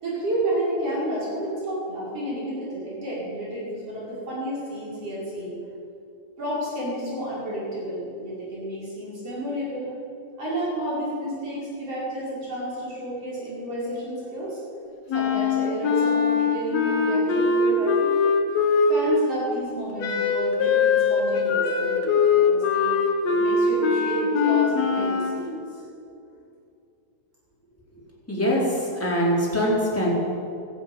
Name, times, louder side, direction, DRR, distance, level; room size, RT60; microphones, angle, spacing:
voice 1, 0.0-5.6 6.4-9.9 10.4-14.6 15.1-18.2 18.9-23.0 23.3-25.8, right 1 dB, 50° right, -8 dB, 6.5 m, -31 dB
Wind instrument woodwind instrument, 15.1-19.3 20.0-25.4, left 5 dB, 65° left, 2.3 m, -22 dB
voice 2, 28.3-30.1, equal, 5° left, -5 dB, 3.9 m, -23 dB
14.0 x 11.0 x 8.9 m, 2.5 s
omnidirectional pair, 3.6 m